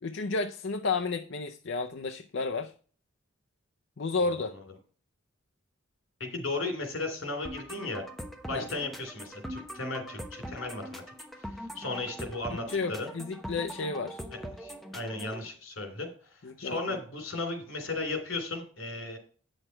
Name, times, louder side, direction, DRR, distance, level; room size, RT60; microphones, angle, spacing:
voice 1, 0.0-2.7 4.0-4.5 8.5-8.6 12.5-14.2 16.4-16.8, left 4 dB, 65° left, 6 dB, 0.6 m, -32 dB
voice 2, 6.2-8.0 8.5-11.0 11.4-13.1 14.6-19.2, left 2 dB, 85° left, 5 dB, 3.1 m, -35 dB
sound 1, 7.4-15.4, equal, ahead, 1.0 m, -42 dB
8.8 x 6.5 x 4.5 m, 0.42 s
head